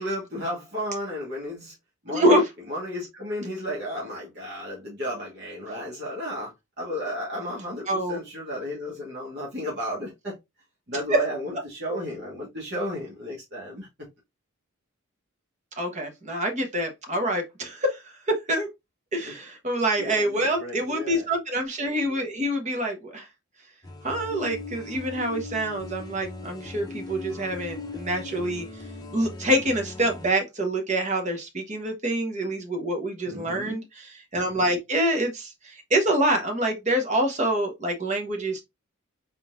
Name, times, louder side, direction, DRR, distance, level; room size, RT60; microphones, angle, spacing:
voice 1, 0.0-1.7 2.0-2.4 2.7-10.4 10.9-13.9 19.2-19.3 20.0-21.3 33.3-33.8, equal, 50° right, 1.6 m, -33 dB
voice 2, 2.1-2.4 7.9-8.2 11.1-11.2 15.8-18.7 19.1-23.3 24.0-28.7 29.1-38.6, right 1 dB, 35° right, 1.0 m, -26 dB
sound 1, 23.8-30.3, left 3 dB, 20° left, 0.7 m, -39 dB
4.1 x 3.8 x 2.5 m
head